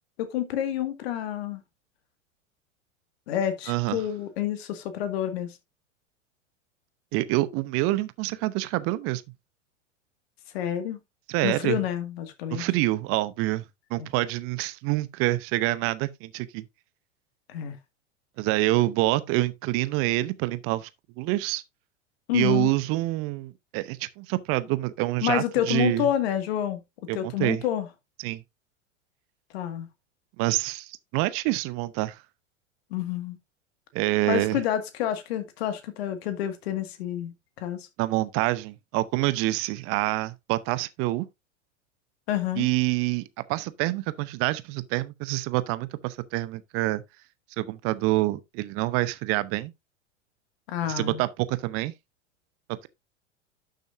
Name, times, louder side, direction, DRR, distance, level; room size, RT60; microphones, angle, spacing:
voice 1, 0.2-1.6 3.3-5.6 10.5-11.0 11.4-12.7 14.0-14.1 17.5-17.8 22.3-22.7 25.2-27.9 29.5-29.9 32.9-33.4 34.3-37.9 42.3-42.7 50.7-51.2, left 11 dB, 55° left, 2.0 m, -29 dB
voice 2, 3.7-4.0 7.1-9.2 11.3-11.8 12.5-13.6 13.9-16.6 18.4-20.9 21.2-21.6 22.3-26.0 27.1-27.6 28.2-28.4 30.4-32.2 33.9-34.6 38.0-41.3 42.6-43.2 43.5-47.0 47.6-49.7 50.9-51.9 52.7-52.9, right 18 dB, 35° right, 0.8 m, -26 dB
12.0 x 6.5 x 2.6 m
figure-of-eight pair, 90°, 38 cm